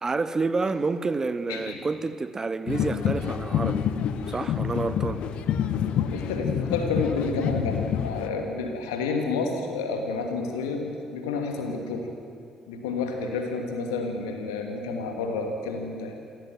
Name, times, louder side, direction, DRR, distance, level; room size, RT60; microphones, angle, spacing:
voice 1, 0.0-3.9 4.3-5.2, right 3 dB, 25° right, 13 dB, 1.0 m, -28 dB
voice 2, 1.5-1.8 6.1-12.1 12.7-16.2, left 4 dB, 70° left, 3 dB, 2.6 m, -30 dB
sound 1, 2.7-8.3, left 9 dB, 55° left, 1.1 m, -28 dB
27.0 x 14.0 x 7.8 m, 2.3 s
figure-of-eight pair, 45°, 2 cm